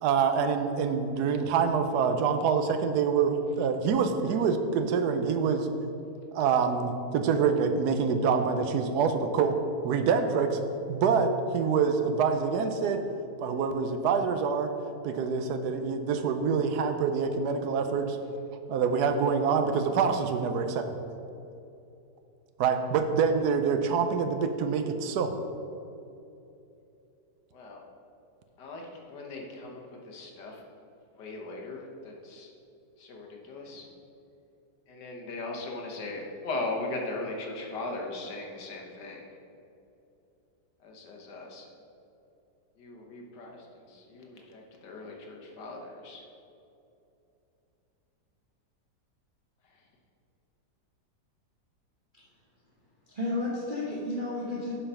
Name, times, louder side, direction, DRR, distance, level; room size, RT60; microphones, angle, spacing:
voice 1, 0.0-5.7 6.3-9.6 9.8-10.6 10.9-13.0 13.4-14.7 15.0-18.2 18.7-20.8 22.6-25.3, right 6 dB, 70° right, 7 dB, 1.1 m, -26 dB
voice 2, 27.5-27.8 28.6-30.6 31.2-32.5 33.0-33.9 34.9-39.3 40.8-41.7 42.8-46.3 49.6-49.9, left 2 dB, 75° left, 1 dB, 1.7 m, -39 dB
voice 3, 53.1-54.7, left 2 dB, 35° right, -6 dB, 1.0 m, -32 dB
6.8 x 5.5 x 5.5 m, 2.8 s
omnidirectional pair, 1.9 m